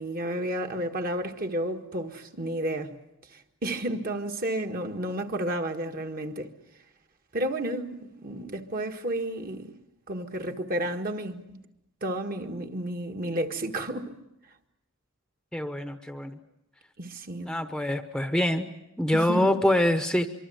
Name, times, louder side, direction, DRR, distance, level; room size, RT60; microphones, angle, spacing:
voice 1, 0.0-2.9 3.3-6.5 7.3-9.7 10.1-11.6 12.0-14.2 17.0-17.5 19.1-19.6, right 1 dB, 45° right, 1.7 m, -31 dB
voice 2, 15.5-16.4 17.4-18.7 19.0-20.3, left 1 dB, 5° left, 0.9 m, -25 dB
24.5 x 24.5 x 7.9 m
head